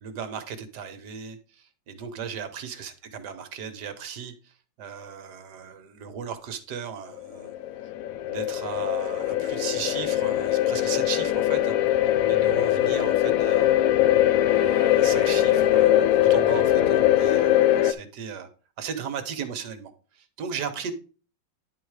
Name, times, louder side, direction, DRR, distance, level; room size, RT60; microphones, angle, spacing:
voice 1, 0.0-7.5 8.3-11.8 12.3-13.8 14.5-18.5 18.8-20.9, right 7 dB, 65° right, 1.5 m, -36 dB
sound 1, 7.2-17.9, left 13 dB, 75° left, 0.8 m, -21 dB
10.5 x 4.0 x 4.8 m
omnidirectional pair, 2.1 m